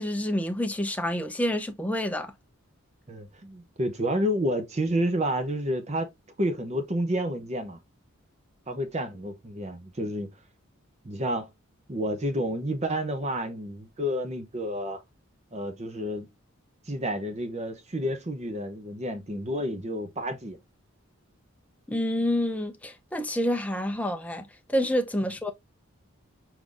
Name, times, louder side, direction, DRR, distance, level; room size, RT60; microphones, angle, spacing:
voice 1, 0.0-2.3 21.9-25.5, left 1 dB, 5° left, 0.5 m, -28 dB
voice 2, 3.1-6.1 6.4-7.8 8.7-10.3 11.0-11.5 11.9-15.0 15.5-16.3 16.9-20.6, equal, 30° right, 0.7 m, -30 dB
4.7 x 3.7 x 2.5 m
head